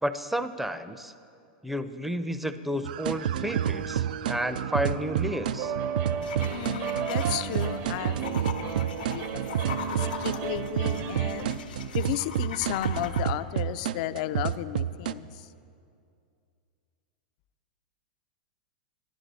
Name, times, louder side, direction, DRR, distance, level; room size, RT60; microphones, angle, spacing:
voice 1, 0.0-1.1 1.6-5.7, equal, 5° right, 10 dB, 0.5 m, -31 dB
sound 1, 2.8-15.1, right 9 dB, 75° right, 0.3 m, -30 dB
sound 2, 5.6-11.5, right 6 dB, 50° right, 0.7 m, -34 dB
sound 3, 6.2-13.2, left 7 dB, 85° left, 1.0 m, -41 dB
voice 2, 6.5-9.2 9.7-11.5 11.9-15.3, left 13 dB, 55° left, 12 dB, 0.4 m, -34 dB
14.0 x 11.5 x 4.1 m, 2.4 s
hypercardioid pair, 120°, 5 cm